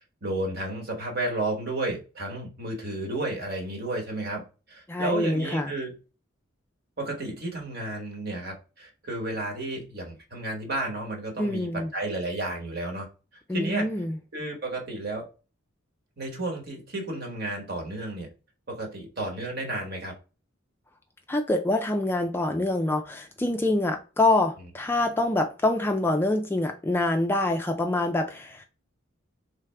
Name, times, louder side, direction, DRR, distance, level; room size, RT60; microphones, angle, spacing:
voice 1, 0.2-4.4 4.7-6.0 7.0-13.9 14.3-15.3 16.2-18.3 18.7-20.1, right 2 dB, 50° right, 1.3 m, -32 dB
voice 2, 4.9-5.7 11.4-11.9 13.5-14.2 21.3-28.6, left 2 dB, 10° left, 0.3 m, -25 dB
3.5 x 3.3 x 3.3 m
head